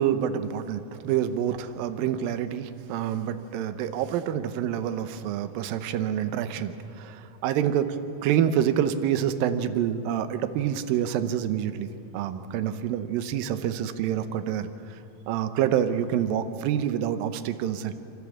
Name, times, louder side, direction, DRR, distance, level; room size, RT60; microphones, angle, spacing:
voice 1, 0.0-8.0 8.2-14.7 15.3-18.0, right 9 dB, 75° right, 10 dB, 2.6 m, -27 dB
28.5 x 13.5 x 7.3 m, 2.9 s
omnidirectional pair, 4.3 m